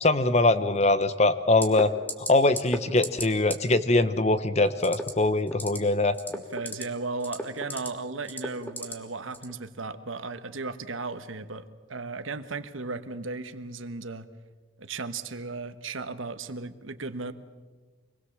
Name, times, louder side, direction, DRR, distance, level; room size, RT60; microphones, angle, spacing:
voice 1, 0.0-1.9 2.2-6.2, left 2 dB, 35° left, 13 dB, 0.9 m, -22 dB
sound 1, 1.6-1.8 2.1-2.3 2.6-2.8 3.0-3.2 3.5-3.6 4.8-5.1 5.5-5.8 6.1-6.8 7.2-7.9 8.3-8.9 9.3-9.5, left 1 dB, 10° left, 1.8 m, -32 dB
voice 2, 6.3-14.3 14.8-17.3, right 3 dB, 85° right, 10 dB, 1.3 m, -36 dB
25.5 x 20.0 x 7.3 m, 1.3 s
head